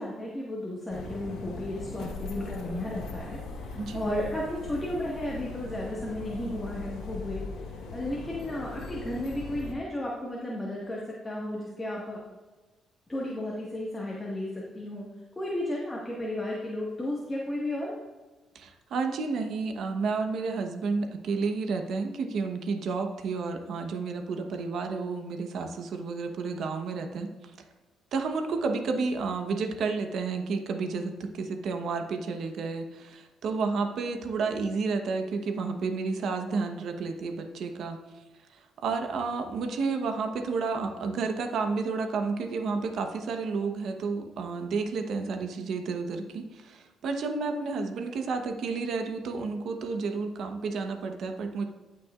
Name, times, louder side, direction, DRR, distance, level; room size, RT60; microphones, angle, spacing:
voice 1, 0.0-7.4 7.9-12.2 13.1-15.1 15.3-17.9, left 1 dB, 15° left, -5 dB, 1.7 m, -34 dB
sound 1, 0.9-9.7, left 3 dB, 85° left, 1.4 m, -39 dB
voice 2, 3.7-4.2 18.5-27.3 28.1-38.0 38.8-51.6, right 4 dB, 70° right, 6 dB, 1.1 m, -31 dB
16.0 x 5.9 x 2.5 m, 1.2 s
cardioid pair, 90°, 0 cm